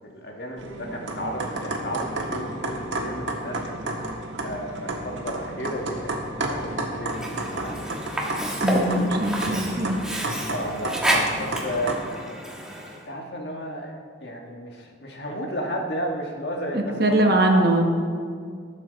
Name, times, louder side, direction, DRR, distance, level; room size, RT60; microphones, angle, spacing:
voice 1, 0.1-3.6 4.4-7.9 10.5-11.9 13.0-13.9 14.2-17.7, equal, 60° left, 0 dB, 1.7 m, -32 dB
sound 1, 0.6-12.0, right 2 dB, 85° right, 1.7 m, -31 dB
Sink (filling or washing), 7.1-13.1, right 1 dB, 5° right, 1.4 m, -29 dB
voice 2, 8.6-10.0 16.7-17.8, right 1 dB, 55° right, 3 dB, 1.2 m, -21 dB
19.0 x 7.4 x 4.1 m, 2.1 s
head